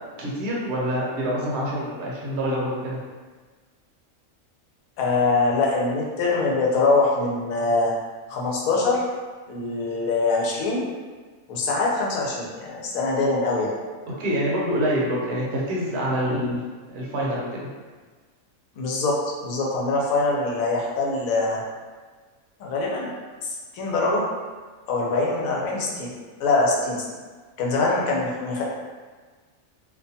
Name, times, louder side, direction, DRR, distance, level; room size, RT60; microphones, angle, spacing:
voice 1, 0.2-3.0 14.1-16.6 16.9-17.7, equal, 60° right, -4 dB, 0.8 m, -26 dB
voice 2, 5.0-7.9 8.3-9.0 9.5-10.8 11.5-13.7 16.3-16.6 18.8-21.6 22.6-23.1 23.4-24.2 24.9-26.1 26.4-27.0 27.6-28.6, left 3 dB, 85° left, -3 dB, 1.0 m, -23 dB
2.5 x 2.2 x 2.7 m, 1.4 s
omnidirectional pair, 1.4 m